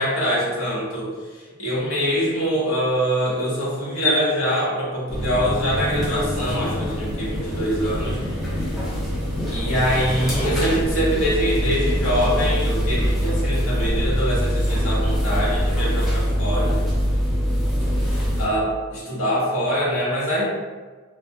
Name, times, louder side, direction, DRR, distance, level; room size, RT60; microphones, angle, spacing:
voice 1, 0.0-8.2 9.5-16.8 18.0-20.4, equal, 60° left, -8 dB, 0.9 m, -24 dB
sound 1, 5.1-18.4, equal, ahead, 0.4 m, -23 dB
2.2 x 2.1 x 2.8 m, 1.4 s
head